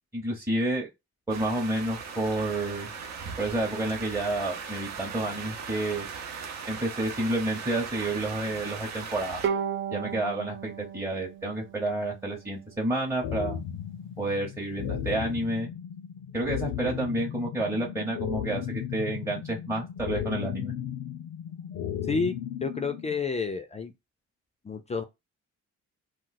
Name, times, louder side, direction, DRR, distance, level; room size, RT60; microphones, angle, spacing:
voice 1, 0.1-0.9 1.3-2.9 3.4-6.1 6.7-9.4 9.9-13.6 14.2-15.7 16.3-20.7, right 1 dB, 10° right, 0.8 m, -30 dB
sound 1, 1.3-9.5, right 6 dB, 60° right, 0.8 m, -39 dB
Bowed string instrument, 9.4-12.8, right 7 dB, 40° right, 0.4 m, -34 dB
sound 2, 13.2-23.2, left 10 dB, 75° left, 0.5 m, -35 dB
voice 2, 22.0-22.3 22.6-23.9 24.6-25.0, left 4 dB, 20° left, 0.4 m, -29 dB
2.4 x 2.3 x 3.9 m
cardioid pair, 90°, 30 cm